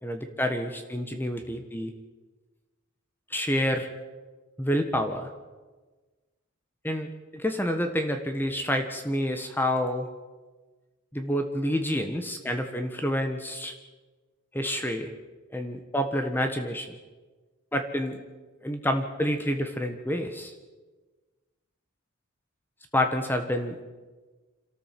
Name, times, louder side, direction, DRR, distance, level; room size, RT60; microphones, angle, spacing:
voice 1, 0.0-1.9 3.3-3.9 4.6-5.3 6.8-10.1 11.1-13.7 14.5-15.1 15.5-17.0 17.7-18.2 18.6-20.5 22.9-23.8, equal, 10° left, 6 dB, 1.3 m, -28 dB
26.5 x 13.5 x 7.6 m, 1.3 s
head